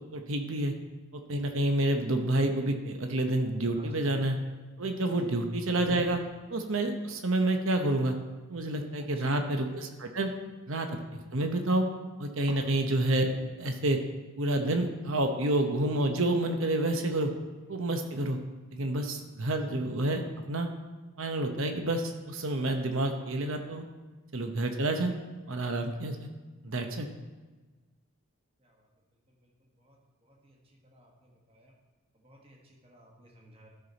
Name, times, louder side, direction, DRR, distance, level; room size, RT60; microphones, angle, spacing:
voice 1, 0.1-0.7 1.1-4.4 4.8-6.2 6.5-8.2 8.5-10.3 10.7-11.9 12.2-13.3 13.6-14.0 14.4-17.3 17.7-18.4 18.7-20.2 20.5-20.7 21.2-23.8 24.3-25.1 25.5-26.3 26.6-27.1, right 1 dB, 70° right, 5 dB, 0.9 m, -29 dB
voice 2, 32.2-32.6 32.8-33.7, equal, 25° right, -1 dB, 1.4 m, -50 dB
13.0 x 5.9 x 4.0 m, 1.3 s
head